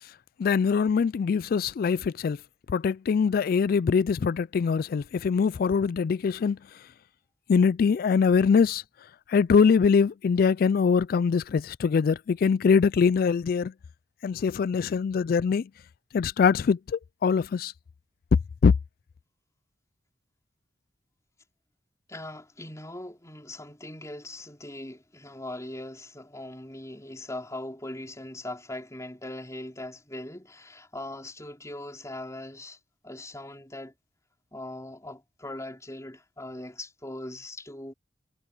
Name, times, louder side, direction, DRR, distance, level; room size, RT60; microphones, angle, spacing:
voice 1, 0.4-2.4 2.7-6.6 7.5-8.8 9.3-13.7 14.2-15.6 16.1-17.7 18.6-18.7, left 6 dB, 55° left, 0.3 m, -23 dB
voice 2, 22.1-32.8 33.0-33.9 34.5-37.9, left 1 dB, 15° left, 4.6 m, -40 dB
head